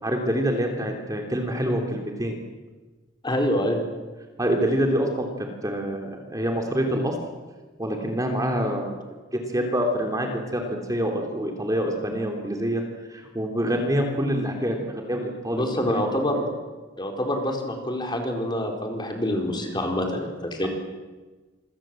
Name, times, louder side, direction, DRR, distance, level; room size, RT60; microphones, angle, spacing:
voice 1, 0.0-2.4 4.4-7.1 7.8-9.0 9.3-12.8 13.1-15.7 15.9-16.0, equal, 20° right, 2 dB, 3.1 m, -26 dB
voice 2, 3.2-3.8 15.5-16.5 17.0-20.7, left 1 dB, 25° left, 3 dB, 4.4 m, -26 dB
27.5 x 24.5 x 7.8 m, 1.3 s
head